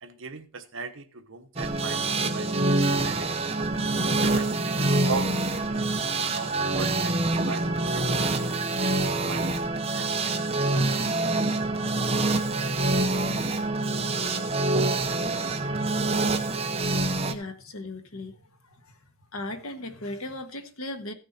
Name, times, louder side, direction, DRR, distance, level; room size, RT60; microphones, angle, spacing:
voice 1, 0.0-3.3 4.0-7.2 7.4-9.7 9.9-10.5, right 4 dB, 65° right, 1.1 m, -39 dB
sound 1, 1.6-17.3, right 2 dB, 25° right, 0.8 m, -26 dB
voice 2, 17.2-18.4 19.3-21.1, left 1 dB, 80° left, 1.5 m, -36 dB
15.0 x 6.4 x 4.2 m
head